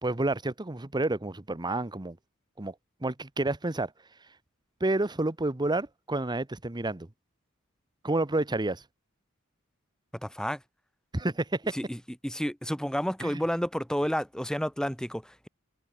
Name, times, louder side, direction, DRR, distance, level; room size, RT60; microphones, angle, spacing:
voice 1, 0.0-2.2 2.6-2.7 3.0-3.9 4.8-7.1 8.0-8.8 11.1-11.8 13.2-13.4, right 2 dB, 20° right, 1.0 m, -29 dB
voice 2, 10.2-10.6 11.7-15.5, equal, 5° left, 4.8 m, -31 dB
head